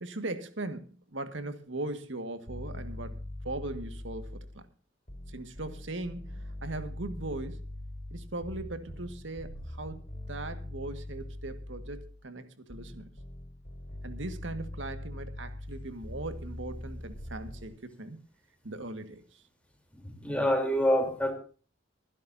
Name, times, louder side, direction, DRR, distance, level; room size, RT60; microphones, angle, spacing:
voice 1, 0.0-3.1 3.4-4.6 5.3-7.6 8.1-10.0 10.3-13.1 14.0-18.2 18.6-19.4, right 2 dB, 75° right, 1.8 m, -39 dB
sound 1, 2.5-4.6 5.1-12.2 12.7-17.7, left 1 dB, 35° left, 4.5 m, -42 dB
voice 2, 20.0-21.3, equal, 5° left, 3.5 m, -26 dB
24.5 x 11.0 x 2.7 m
head